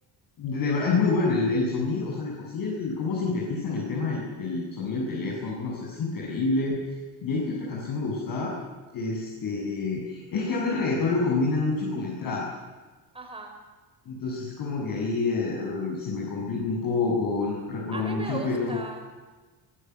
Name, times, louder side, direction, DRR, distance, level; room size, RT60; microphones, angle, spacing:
voice 1, 0.4-6.8 7.2-8.5 8.9-12.4 14.1-18.8, left 3 dB, 55° left, -5 dB, 7.9 m, -28 dB
voice 2, 13.1-13.5 17.9-19.1, right 2 dB, 15° right, 4 dB, 5.8 m, -38 dB
25.5 x 20.0 x 9.6 m, 1.3 s
cardioid pair, 150°, 42 cm